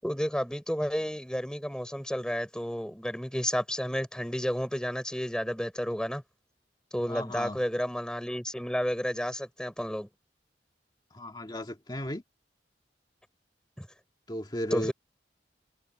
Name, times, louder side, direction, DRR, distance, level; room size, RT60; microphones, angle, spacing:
voice 1, 0.0-6.2 6.9-10.1 13.8-13.9 14.7-14.9, equal, 5° left, 5.9 m, -31 dB
voice 2, 7.1-7.6 11.1-12.2 14.3-14.9, equal, 25° left, 1.9 m, -35 dB
open air
head